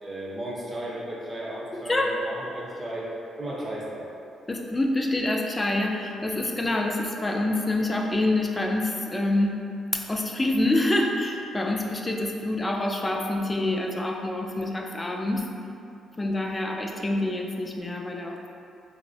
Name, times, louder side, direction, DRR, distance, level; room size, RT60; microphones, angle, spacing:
voice 1, 0.0-3.1 3.4-4.1, right 1 dB, 25° right, -5 dB, 0.6 m, -35 dB
voice 2, 4.5-9.6 10.1-15.5 16.2-18.5, left 1 dB, 20° left, 1 dB, 0.3 m, -26 dB
3.4 x 2.0 x 2.6 m, 2.6 s
cardioid pair, 90°, 0 cm